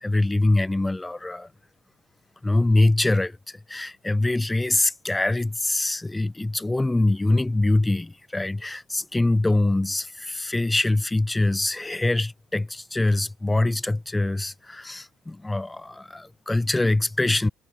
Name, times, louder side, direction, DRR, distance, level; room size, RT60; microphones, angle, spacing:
voice 1, 0.0-1.5 2.4-17.5, left 2 dB, 10° left, 1.7 m, -24 dB
cardioid pair, 155°, 0 cm